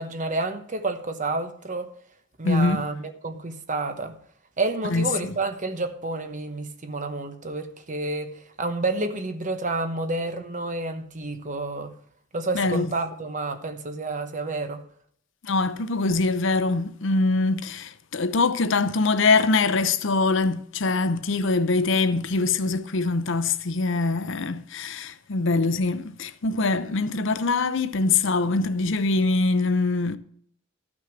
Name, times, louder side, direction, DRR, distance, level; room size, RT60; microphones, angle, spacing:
voice 1, 0.0-1.9 2.4-4.2 4.6-12.0 12.3-14.8, right 2 dB, 40° right, 1.1 m, -29 dB
voice 2, 2.4-2.8 4.9-5.3 12.5-12.9 15.4-30.2, left 3 dB, 65° left, 0.7 m, -23 dB
13.5 x 6.2 x 6.0 m
head